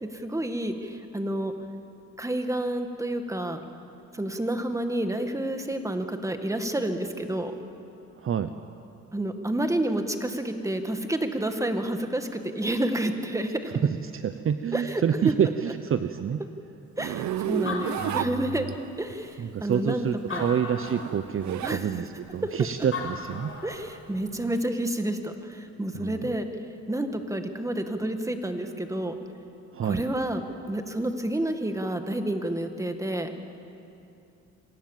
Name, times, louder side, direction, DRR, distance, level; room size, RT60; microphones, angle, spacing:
voice 1, 0.0-1.5 2.2-3.6 4.1-7.5 9.1-13.7 14.7-15.3 17.0-18.7 19.0-20.4 21.6-21.9 23.6-26.5 26.9-29.2 29.8-33.3, right 1 dB, 10° right, 6 dB, 2.0 m, -29 dB
voice 2, 8.2-8.5 13.8-16.4 18.0-18.7 19.4-23.5 25.9-26.4 29.7-30.0, right 8 dB, 45° right, 10 dB, 0.8 m, -28 dB
Zipper (clothing), 17.0-19.0 20.2-21.8 22.2-24.7, right 12 dB, 70° right, 0.8 m, -33 dB
Animal, 17.5-18.9 19.6-19.7 20.2-21.2 22.6-22.7 22.9-23.9, left 4 dB, 45° left, 5.8 m, -36 dB
26.0 x 18.5 x 7.5 m, 2.8 s
cardioid pair, 90°, 30 cm